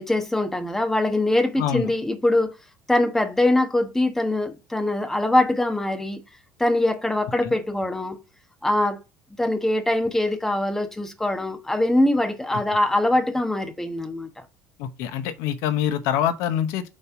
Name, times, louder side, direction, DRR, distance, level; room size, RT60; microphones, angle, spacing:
voice 1, 0.0-2.6 2.9-6.2 6.6-8.2 8.6-9.0 9.4-14.4, left 1 dB, 5° left, 1.1 m, -23 dB
voice 2, 1.5-1.9 7.4-7.5 12.5-12.6 14.8-16.9, left 10 dB, 75° left, 0.9 m, -25 dB
5.4 x 4.1 x 5.8 m
cardioid pair, 135°, 5 cm